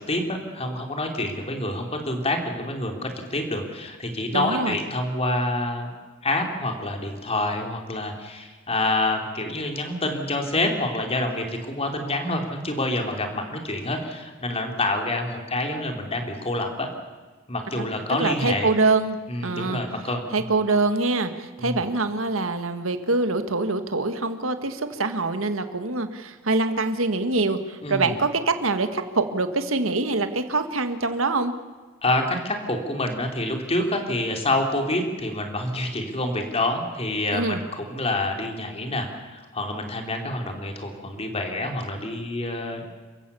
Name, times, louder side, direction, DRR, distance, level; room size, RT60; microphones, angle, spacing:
voice 1, 0.0-5.9 6.2-16.9 17.5-18.7 19.3-20.5 21.6-21.8 27.8-28.1 32.0-42.9, left 2 dB, 30° left, 3 dB, 3.3 m, -27 dB
voice 2, 4.3-4.8 17.7-17.8 18.2-19.2 19.4-19.8 20.3-31.5 37.3-37.6, right 3 dB, 80° right, 8 dB, 1.7 m, -24 dB
29.0 x 15.5 x 7.0 m, 1.4 s
head